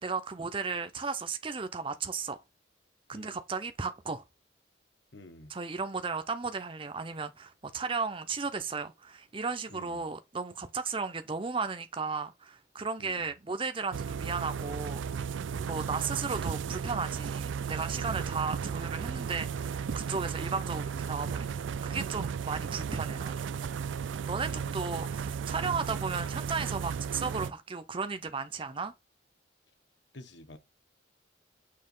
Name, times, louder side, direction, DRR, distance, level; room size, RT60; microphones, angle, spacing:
voice 1, 0.0-2.4 3.1-4.2 5.5-15.0 15.7-23.5 24.3-28.9, right 4 dB, 30° right, 0.6 m, -35 dB
voice 2, 3.1-3.4 5.1-5.5 9.7-10.0 13.0-13.3 15.5-15.8 18.2-18.4 24.2-24.8 30.1-30.6, left 1 dB, 65° left, 1.1 m, -51 dB
sound 1, 13.9-27.5, right 6 dB, 80° right, 0.4 m, -35 dB
6.6 x 2.9 x 5.3 m
head